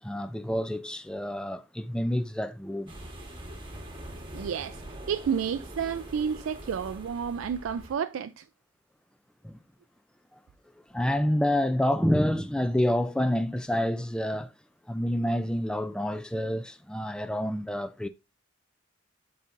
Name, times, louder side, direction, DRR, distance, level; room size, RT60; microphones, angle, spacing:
voice 1, 0.0-2.9 9.4-9.6 10.9-14.5 14.9-18.1, left 1 dB, 5° left, 0.3 m, -28 dB
sound 1, 2.9-7.9, right 1 dB, 25° right, 1.3 m, -43 dB
voice 2, 4.3-4.8 5.1-8.5, right 7 dB, 85° right, 0.3 m, -30 dB
11.0 x 4.2 x 2.5 m
head